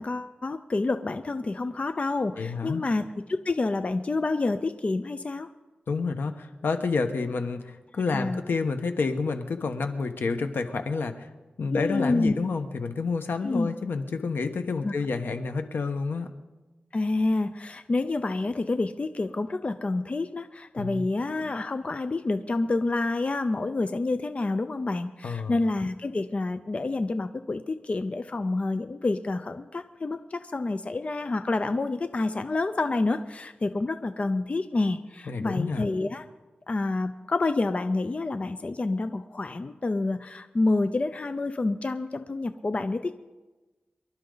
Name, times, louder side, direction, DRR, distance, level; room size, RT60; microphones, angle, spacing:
voice 1, 0.0-3.1 3.4-5.5 8.1-8.4 11.7-12.3 13.4-13.7 14.8-14.9 16.9-36.2 36.7-43.1, left 2 dB, 40° left, 10 dB, 0.6 m, -28 dB
voice 2, 2.4-2.8 5.9-11.3 11.6-16.3 20.8-21.0 25.2-25.6 35.3-35.8, left 4 dB, 80° left, 7 dB, 1.2 m, -29 dB
25.0 x 12.0 x 4.0 m, 1.2 s
wide cardioid pair, 110°, 3 cm